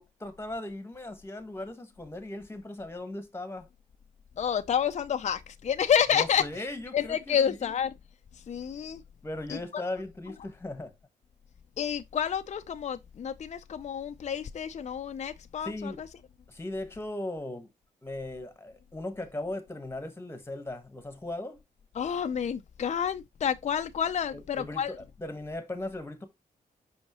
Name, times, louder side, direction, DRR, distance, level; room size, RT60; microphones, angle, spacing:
voice 1, 0.0-3.7 6.1-7.8 9.2-10.9 15.6-16.0 16.5-17.7 18.0-21.6 24.3-26.3, left 1 dB, 15° left, 1.4 m, -38 dB
voice 2, 4.4-7.9 8.3-9.0 9.5-9.8 11.8-16.1 22.0-24.9, left 8 dB, 45° left, 0.5 m, -29 dB
5.7 x 5.4 x 3.0 m
cardioid pair, 95°, 16 cm